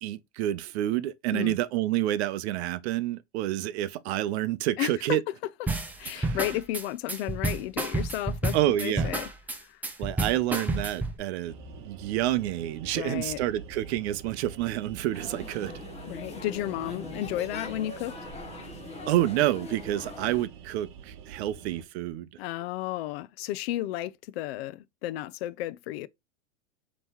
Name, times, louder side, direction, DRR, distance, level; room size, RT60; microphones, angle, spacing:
voice 1, 0.0-5.2 6.0-6.4 8.5-9.1 10.0-15.7 19.1-22.3, right 14 dB, 60° right, 0.6 m, -28 dB
voice 2, 4.8-5.2 6.0-8.6 8.8-9.3 9.7-9.8 12.9-13.4 16.1-18.1 22.4-26.1, left 14 dB, 55° left, 0.5 m, -33 dB
sound 1, 5.7-11.2, right 2 dB, 5° right, 0.5 m, -30 dB
sound 2, 11.4-21.8, right 7 dB, 40° right, 1.0 m, -46 dB
sound 3, 15.1-20.4, left 4 dB, 15° left, 0.9 m, -42 dB
5.3 x 3.1 x 2.9 m
supercardioid pair, 135°, 37 cm